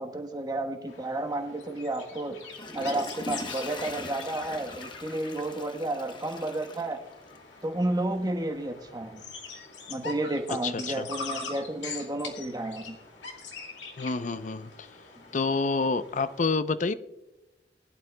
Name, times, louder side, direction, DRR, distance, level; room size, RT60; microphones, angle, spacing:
voice 1, 0.0-2.4 2.7-7.0 7.6-9.2 9.9-13.0, right 1 dB, 20° right, 4 dB, 1.1 m, -31 dB
sound 1, 0.9-16.4, left 4 dB, 90° left, 2.2 m, -43 dB
Water / Toilet flush, 2.3-7.6 8.0-8.1, left 2 dB, 25° left, 0.9 m, -41 dB
voice 2, 10.6-11.1 14.0-14.9 15.3-16.9, left 4 dB, 45° left, 13 dB, 0.6 m, -28 dB
21.0 x 11.5 x 2.2 m, 0.98 s
head